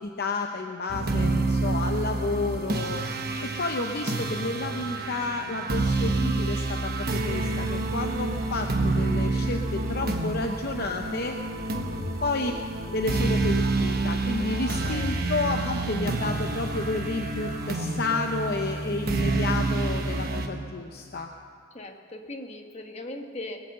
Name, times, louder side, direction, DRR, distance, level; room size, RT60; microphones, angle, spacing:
voice 1, 0.0-11.4 12.2-12.5 12.9-21.3, left 3 dB, 50° left, 4 dB, 0.7 m, -31 dB
sound 1, 0.9-20.5, right 2 dB, 50° right, 1.2 m, -28 dB
sound 2, 7.3-14.5, right 1 dB, 75° right, 4.8 m, -44 dB
voice 2, 11.7-12.1 14.8-15.1 21.7-23.6, left 1 dB, 30° left, 3 dB, 1.2 m, -39 dB
21.0 x 7.8 x 7.8 m, 2.3 s
head